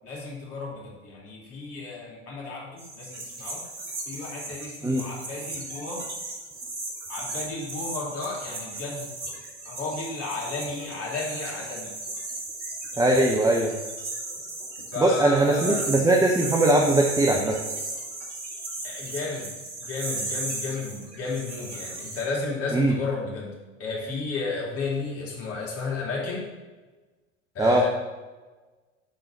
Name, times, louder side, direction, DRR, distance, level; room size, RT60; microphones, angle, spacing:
voice 1, 0.0-3.6 4.0-6.0 7.1-9.1 9.6-11.9 14.9-15.8 18.8-19.5 19.8-23.5 23.8-26.4 27.5-27.9, left 3 dB, 40° left, -3 dB, 2.7 m, -33 dB
sound 1, 2.8-22.2, right 2 dB, 70° right, 1.8 m, -36 dB
voice 2, 13.0-13.7 15.0-17.6 22.7-22.9 27.6-27.8, right 1 dB, 10° right, 0 dB, 0.8 m, -20 dB
11.5 x 3.9 x 4.1 m, 1.3 s
figure-of-eight pair, 75°, 37 cm